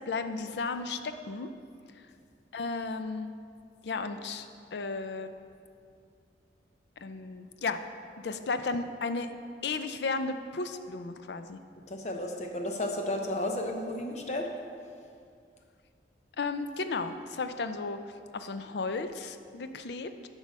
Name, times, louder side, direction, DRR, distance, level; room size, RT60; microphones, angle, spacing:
voice 1, 0.1-1.5 2.5-3.3 3.8-5.3 7.0-7.8 8.2-9.3 9.6-11.6 16.4-18.0 18.3-20.1, left 4 dB, 70° left, 9 dB, 0.5 m, -34 dB
voice 2, 11.9-14.5, left 1 dB, 40° left, 3 dB, 0.7 m, -33 dB
8.1 x 4.9 x 6.4 m, 2.3 s
head